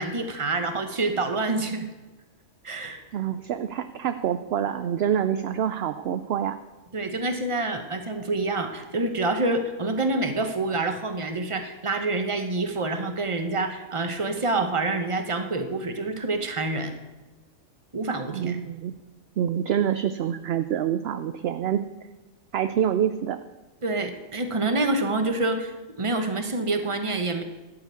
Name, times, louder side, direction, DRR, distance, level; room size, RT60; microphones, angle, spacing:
voice 1, 0.0-1.9 2.6-3.0 6.9-16.9 17.9-18.6 23.8-27.4, right 2 dB, 25° right, 7 dB, 1.0 m, -27 dB
voice 2, 3.1-6.6 18.3-18.9 19.4-21.8 22.5-23.4, right 9 dB, 65° right, 11 dB, 0.7 m, -26 dB
12.5 x 6.9 x 8.3 m, 1.2 s
omnidirectional pair, 1.3 m